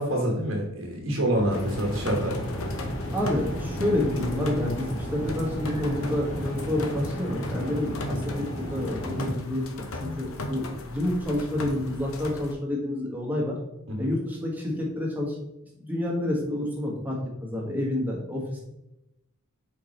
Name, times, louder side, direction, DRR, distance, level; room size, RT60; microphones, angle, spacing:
voice 1, 0.0-2.3 13.9-14.1, right 1 dB, 65° right, -1 dB, 1.2 m, -27 dB
sound 1, 1.3-9.3, equal, 35° left, 1.7 m, -33 dB
sound 2, 1.5-12.5, left 1 dB, 70° left, 0.8 m, -37 dB
voice 2, 3.1-13.6 14.0-15.4 15.8-18.6, left 1 dB, 10° right, -2 dB, 1.4 m, -29 dB
4.8 x 4.6 x 4.3 m, 0.88 s
head